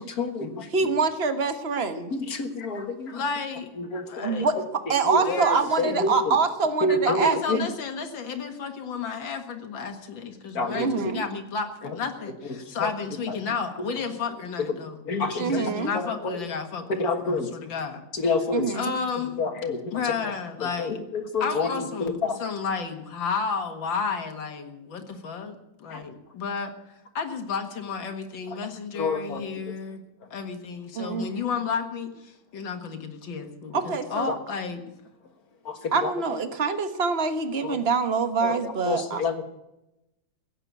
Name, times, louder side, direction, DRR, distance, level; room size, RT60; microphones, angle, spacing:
voice 1, 0.0-0.7 2.1-3.2 3.8-4.3 4.6-4.7 5.0-5.4 5.8-6.4 6.8-7.7 10.5-11.1 11.8-12.0 12.8-12.9 13.3-13.4 13.8-13.9 15.1-16.4 16.9-17.5 18.1-18.7 19.4-20.1 20.6-21.7 22.0-22.4 25.9-26.0 29.0-29.4 33.7-33.8 34.3-34.4 35.7-36.1 37.6-37.8 38.4-39.4, left 3 dB, 50° left, 6 dB, 1.9 m, -28 dB
voice 2, 0.7-2.1 4.2-4.5 4.9-7.7 10.7-11.2 15.4-15.9 18.5-18.9 30.9-31.3 33.7-34.4 35.9-39.2, right 5 dB, 35° right, 8 dB, 1.5 m, -25 dB
voice 3, 3.1-3.8 4.1-4.4 5.2-6.0 7.1-15.0 15.3-16.9 17.2-18.0 18.7-19.4 19.9-21.0 21.4-26.7 27.1-30.0 30.3-34.8, left 5 dB, 80° left, 6 dB, 2.4 m, -32 dB
16.5 x 8.9 x 9.4 m, 0.91 s
omnidirectional pair, 2.1 m